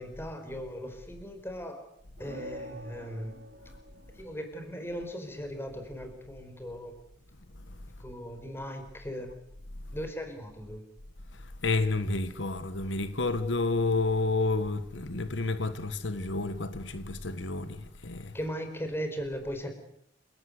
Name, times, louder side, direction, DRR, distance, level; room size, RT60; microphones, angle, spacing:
voice 1, 0.0-1.8 2.2-3.3 4.2-6.9 8.0-9.3 9.9-10.8 18.3-19.7, equal, 15° left, 5.0 m, -38 dB
sound 1, 2.2-4.9, equal, 75° right, 4.0 m, -46 dB
voice 2, 11.6-18.3, left 3 dB, 85° left, 1.5 m, -30 dB
28.5 x 18.0 x 8.3 m
head